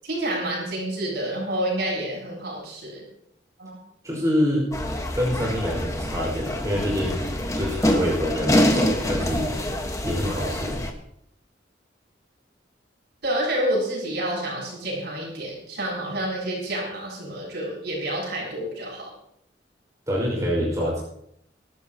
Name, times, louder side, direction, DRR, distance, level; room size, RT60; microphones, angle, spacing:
voice 1, 0.0-3.0 3.6-3.8 13.2-19.1, right 1 dB, 65° right, -3 dB, 7.4 m, -28 dB
voice 2, 4.0-4.7 5.2-7.2 7.5-9.5 10.0-10.8 20.1-21.0, equal, 20° right, -4 dB, 5.5 m, -26 dB
sound 1, 4.7-10.9, equal, 20° left, 1.5 m, -25 dB
24.0 x 13.0 x 3.0 m, 0.73 s
head